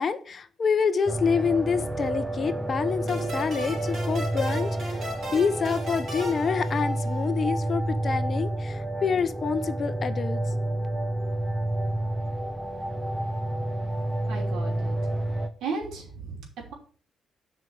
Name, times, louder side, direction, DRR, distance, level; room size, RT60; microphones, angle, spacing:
voice 1, 0.0-10.4, left 6 dB, 35° left, 11 dB, 0.8 m, -27 dB
sound 1, 1.1-15.5, right 1 dB, 10° right, 0.7 m, -29 dB
sound 2, 3.1-7.4, right 1 dB, 50° right, 3.7 m, -37 dB
voice 2, 14.3-15.0 15.6-16.4 16.7-16.8, right 4 dB, 85° right, 2 dB, 3.2 m, -34 dB
7.4 x 5.2 x 7.2 m, 0.44 s
cardioid pair, 145°, 0 cm